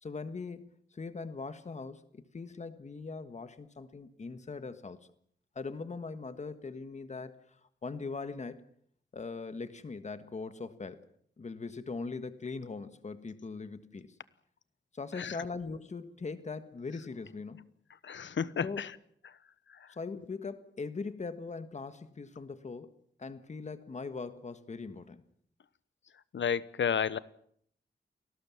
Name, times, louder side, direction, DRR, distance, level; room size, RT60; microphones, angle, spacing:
voice 1, 0.0-5.0 5.5-7.4 7.8-8.6 9.1-11.0 11.4-14.1 14.9-17.7 18.6-18.8 19.9-25.2, left 4 dB, 40° left, 11 dB, 1.5 m, -41 dB
voice 2, 15.1-15.5 18.0-19.0 19.2-19.4 19.7-19.9 26.3-27.2, left 7 dB, 90° left, 16 dB, 1.1 m, -32 dB
29.0 x 19.5 x 7.2 m, 0.66 s
wide cardioid pair, 180°, 19 cm